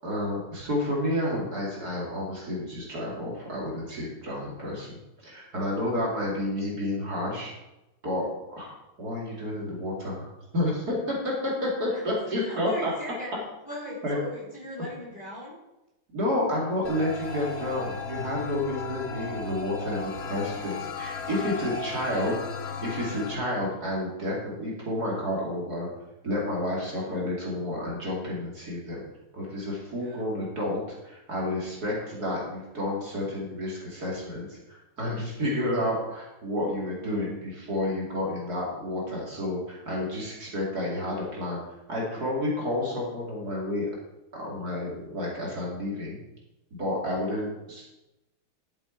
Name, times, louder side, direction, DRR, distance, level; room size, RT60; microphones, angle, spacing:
voice 1, 0.0-7.5 8.0-8.7 9.0-10.3 10.5-12.9 14.0-14.2 16.1-25.9 26.2-29.0 29.3-41.6 41.9-43.9 44.4-46.2 46.7-47.9, left 1 dB, 45° right, -4 dB, 2.9 m, -30 dB
voice 2, 12.4-13.3 13.6-15.6 21.3-22.3 26.8-27.1 30.0-30.2 32.2-32.4, equal, 20° left, -5 dB, 3.1 m, -40 dB
sound 1, 16.8-23.4, left 5 dB, 55° left, 0.7 m, -36 dB
sound 2, 17.2-22.2, left 1 dB, 90° left, 2.9 m, -48 dB
11.5 x 7.7 x 4.5 m, 0.97 s
omnidirectional pair, 2.4 m